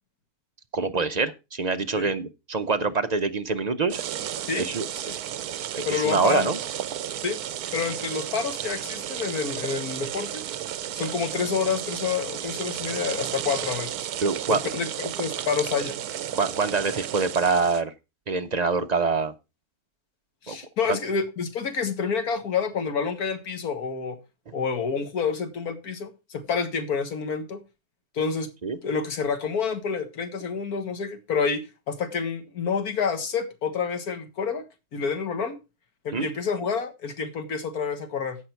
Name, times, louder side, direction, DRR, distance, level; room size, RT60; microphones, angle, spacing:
voice 1, 0.7-4.0 4.5-4.9 5.8-6.6 14.2-14.6 16.3-17.9 18.3-19.3 20.5-20.6 20.9-21.0 28.6-28.8 36.1-36.3, right 4 dB, 50° right, 8 dB, 0.5 m, -25 dB
sound 1, 3.9-17.8, right 10 dB, 75° right, 1.2 m, -33 dB
voice 2, 5.9-6.5 7.2-7.4 7.7-10.4 11.0-14.1 14.5-16.0 20.4-24.2 24.5-27.6 28.1-28.5 28.8-34.6 34.9-35.6 36.1-38.4, left 5 dB, 70° left, 8 dB, 2.0 m, -28 dB
15.0 x 5.6 x 4.5 m, 0.27 s
omnidirectional pair, 1.7 m